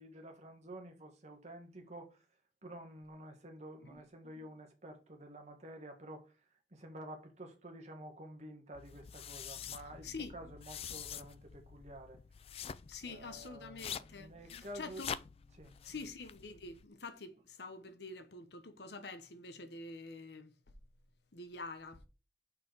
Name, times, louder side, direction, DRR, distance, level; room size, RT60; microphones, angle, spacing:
voice 1, 0.0-2.2 2.6-6.3 6.7-12.2 13.0-15.1 15.5-16.0 17.3-17.4, right 1 dB, 40° right, 1.6 m, -50 dB
sound 1, 8.7-16.9, left 8 dB, 35° left, 0.3 m, -47 dB
voice 2, 12.9-15.1 15.8-20.5 21.3-22.0, left 3 dB, 70° left, 1.0 m, -47 dB
6.1 x 4.6 x 4.6 m
head